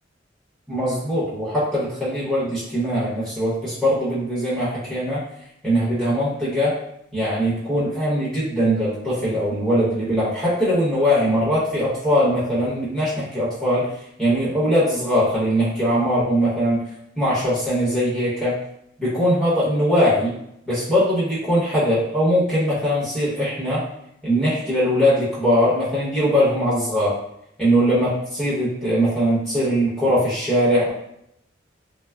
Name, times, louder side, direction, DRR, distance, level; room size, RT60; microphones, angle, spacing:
voice 1, 0.7-5.2 5.6-6.8 7.1-13.9 14.2-16.9 17.2-18.6 19.0-20.3 20.7-23.8 24.2-27.2 27.6-30.9, equal, ahead, -10 dB, 0.8 m, -21 dB
3.3 x 2.0 x 2.3 m, 0.76 s
head